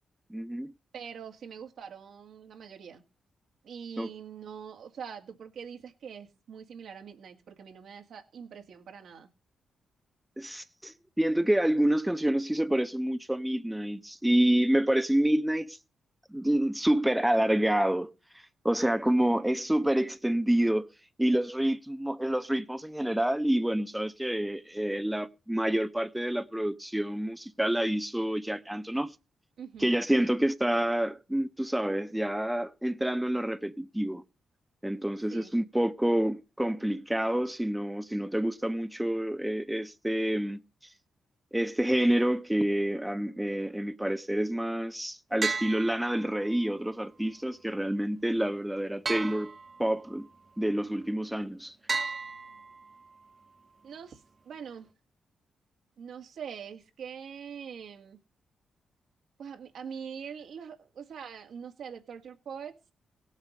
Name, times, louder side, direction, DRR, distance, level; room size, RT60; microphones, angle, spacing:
voice 1, 0.3-0.7 4.0-4.1 10.4-15.8 16.3-18.1 18.6-20.9 21.2-29.1 29.8-34.2 34.8-40.6 41.5-49.5 49.8-50.3 50.6-51.7, right 1 dB, 5° right, 0.8 m, -28 dB
voice 2, 0.9-3.0 3.6-9.3 29.6-29.9 30.2-30.3 35.3-35.5 53.8-54.9 56.0-58.2 59.4-62.8, right 7 dB, 75° right, 2.0 m, -43 dB
sound 1, 45.4-46.7 49.0-50.1 51.9-53.1, right 4 dB, 40° right, 0.6 m, -34 dB
17.0 x 7.4 x 5.4 m
cardioid pair, 65°, 0 cm